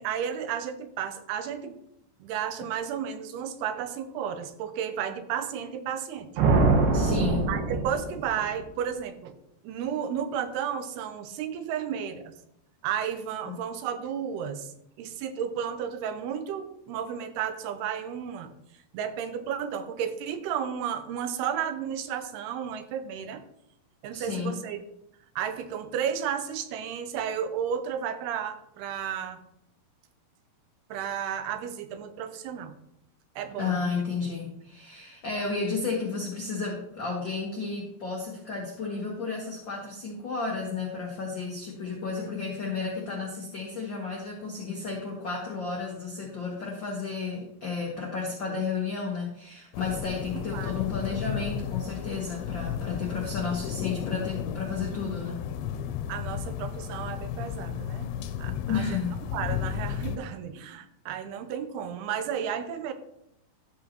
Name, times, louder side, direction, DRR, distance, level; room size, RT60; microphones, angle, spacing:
voice 1, 0.0-1.8 2.2-6.3 7.5-9.4 9.6-12.3 12.8-14.7 15.0-18.5 18.9-23.4 24.0-24.8 25.4-29.4 30.9-32.7 33.4-33.8 42.2-42.3 50.3-50.7 56.1-58.1 58.4-59.0 59.3-62.9, right 8 dB, 85° right, 9 dB, 2.8 m, -33 dB
sound 1, 6.4-8.6, right 3 dB, 65° right, 2.4 m, -24 dB
voice 2, 6.9-7.5 13.4-13.5 24.1-24.6 33.6-55.4 58.7-59.1, left 4 dB, 70° left, -2 dB, 1.1 m, -32 dB
sound 2, 49.7-60.2, left 9 dB, 90° left, 2.7 m, -33 dB
12.5 x 7.9 x 3.0 m, 0.77 s
omnidirectional pair, 4.5 m